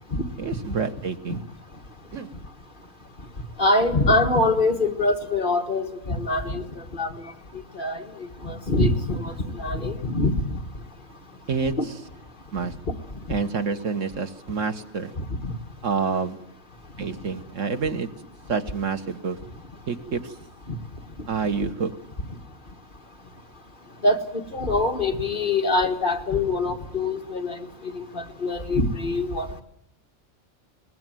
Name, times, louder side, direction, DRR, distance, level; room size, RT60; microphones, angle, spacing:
voice 1, 0.4-1.4 2.1-2.3 11.5-11.9 12.5-12.7 13.3-15.1 15.8-16.4 17.0-18.1 18.5-19.4 19.9-20.3 21.3-21.9, right 5 dB, 70° right, 8 dB, 1.6 m, -28 dB
voice 2, 3.6-7.1 7.8-8.0 8.4-10.6 11.8-11.9 15.4-15.5 24.0-24.2 24.5-27.6 27.9-29.6, left 2 dB, 40° left, 4 dB, 1.8 m, -24 dB
22.0 x 19.5 x 9.1 m, 0.70 s
omnidirectional pair, 1.3 m